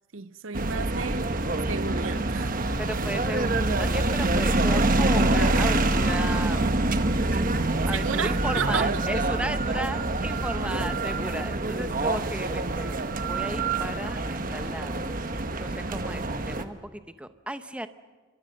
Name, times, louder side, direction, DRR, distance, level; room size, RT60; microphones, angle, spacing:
voice 1, 0.1-1.4 1.7-2.5 7.9-8.9, right 6 dB, 85° right, 0.8 m, -32 dB
sound 1, 0.5-16.6, right 2 dB, 45° right, 1.2 m, -26 dB
voice 2, 2.8-6.7 7.8-15.0 15.6-17.9, right 1 dB, 5° right, 0.8 m, -35 dB
29.5 x 24.0 x 6.6 m
head